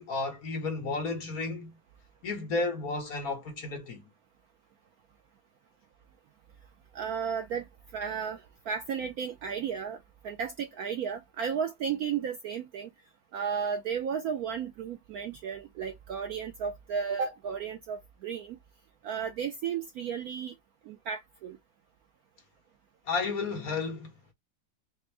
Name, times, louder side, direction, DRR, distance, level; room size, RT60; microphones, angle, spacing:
voice 1, 0.0-1.7 2.2-4.0 23.1-24.1, left 3 dB, 55° left, 1.4 m, -32 dB
voice 2, 6.9-7.7 7.9-10.0 10.2-12.9 13.3-18.6 19.0-20.5 20.9-21.6, right 7 dB, 75° right, 0.9 m, -34 dB
4.3 x 2.1 x 3.3 m
omnidirectional pair, 2.0 m